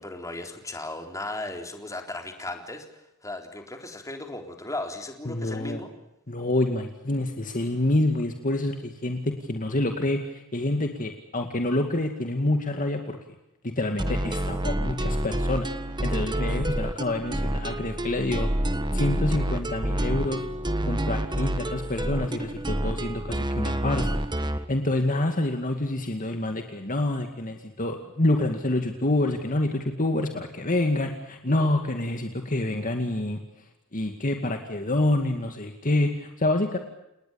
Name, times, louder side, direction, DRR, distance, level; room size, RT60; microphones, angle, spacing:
voice 1, 0.0-2.9 3.2-5.9, left 2 dB, 15° left, 4 dB, 3.9 m, -36 dB
voice 2, 5.3-5.8 6.3-13.2 13.6-15.7 16.0-20.5 20.9-24.2 24.5-33.4 33.9-36.8, left 1 dB, 40° left, 5 dB, 2.2 m, -27 dB
sound 1, 14.0-24.6, right 1 dB, 20° right, 1.5 m, -28 dB
30.0 x 20.0 x 7.1 m, 0.86 s
head